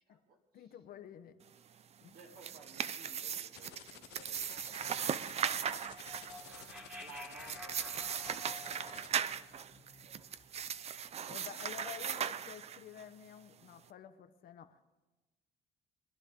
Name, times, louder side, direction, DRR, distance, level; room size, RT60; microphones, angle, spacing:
voice 1, 0.0-0.8 2.1-6.1 6.4-8.9 10.0-10.5, right 3 dB, 60° right, 1 dB, 2.6 m, -59 dB
voice 2, 0.5-1.4 2.0-2.1 11.3-14.8, left 9 dB, 60° left, 9 dB, 1.0 m, -50 dB
sound 1, 2.1-13.0, right 8 dB, 40° right, 0.5 m, -38 dB
sound 2, 3.5-9.1, left 14 dB, 85° left, 0.8 m, -53 dB
sound 3, 4.3-10.7, left 1 dB, 10° right, 2.0 m, -52 dB
23.0 x 11.0 x 3.7 m, 1.2 s
cardioid pair, 110°, 17 cm